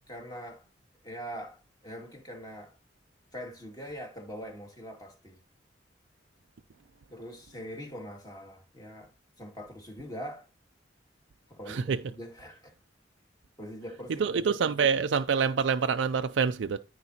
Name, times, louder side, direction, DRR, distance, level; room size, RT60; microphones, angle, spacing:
voice 1, 0.1-0.7 1.0-2.8 3.3-5.4 7.1-9.1 9.4-10.5 11.5-12.7 13.6-14.3, equal, 20° left, 2.1 m, -42 dB
voice 2, 11.7-12.0 14.2-16.8, right 6 dB, 80° right, 0.4 m, -26 dB
14.0 x 4.8 x 2.8 m
head